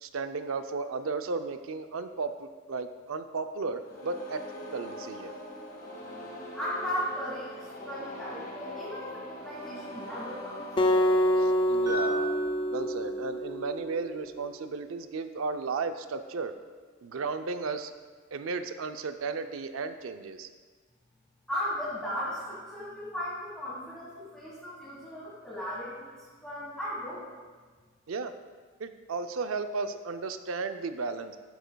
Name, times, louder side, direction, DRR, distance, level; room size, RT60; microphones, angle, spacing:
voice 1, 0.0-4.4 4.7-5.3 11.4-12.4 12.7-16.5 17.0-17.9 18.3-20.5 28.1-28.3 28.8-31.4, right 4 dB, 85° right, 9 dB, 0.5 m, -34 dB
sound 1, 3.8-12.7, equal, 45° left, 2.0 m, -43 dB
voice 2, 6.5-10.6 21.5-27.2, equal, 5° left, -9 dB, 1.5 m, -36 dB
Acoustic guitar, 10.8-14.0, equal, 25° left, 0.4 m, -26 dB
sound 2, 11.9-15.9, right 1 dB, 20° right, 2.0 m, -40 dB
12.0 x 9.0 x 2.3 m, 1.5 s
head